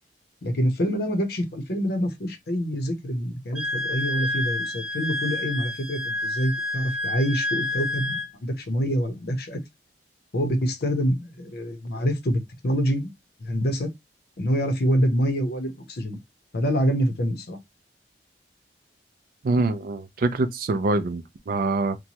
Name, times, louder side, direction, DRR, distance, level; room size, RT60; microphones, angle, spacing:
voice 1, 0.4-9.6 10.3-13.1 13.4-13.9 14.4-16.2 16.5-17.6, equal, 60° left, 0.8 m, -26 dB
Wind instrument woodwind instrument, 3.5-8.3, left 1 dB, 5° right, 0.9 m, -29 dB
voice 2, 19.4-22.0, right 3 dB, 55° right, 0.4 m, -25 dB
2.9 x 2.2 x 2.8 m
head